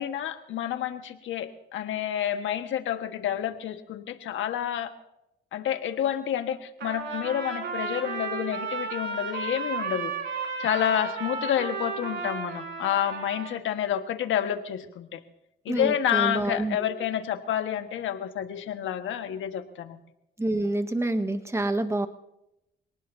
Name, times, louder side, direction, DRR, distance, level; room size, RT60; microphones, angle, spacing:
voice 1, 0.0-4.9 5.5-10.1 10.6-15.2 15.6-20.0, left 10 dB, 80° left, 7 dB, 1.6 m, -29 dB
Trumpet, 6.8-13.5, right 4 dB, 65° right, 5.0 m, -33 dB
voice 2, 15.7-17.0 20.4-22.1, right 2 dB, 15° right, 8 dB, 1.5 m, -28 dB
27.0 x 19.0 x 2.8 m, 0.85 s
cardioid pair, 90°, 20 cm